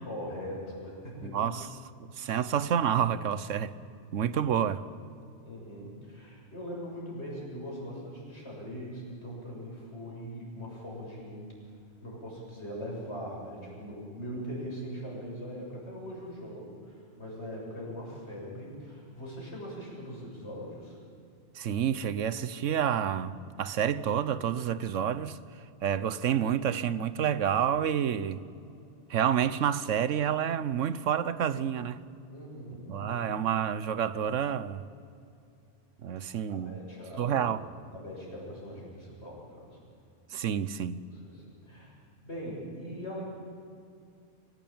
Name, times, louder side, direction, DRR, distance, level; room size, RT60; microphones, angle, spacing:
voice 1, 0.0-1.5 4.6-4.8 5.4-11.5 12.0-21.0 32.3-33.4 36.2-37.6 37.9-39.8 41.1-42.0 42.2-43.2, equal, 60° left, 7.7 m, -41 dB
voice 2, 1.2-1.7 2.1-3.7 4.1-4.8 21.5-25.4 25.8-28.4 29.1-32.0 32.9-34.9 36.0-36.8 37.2-37.6 40.3-41.1, right 9 dB, 85° right, 1.2 m, -29 dB
26.5 x 16.5 x 8.8 m
omnidirectional pair, 1.3 m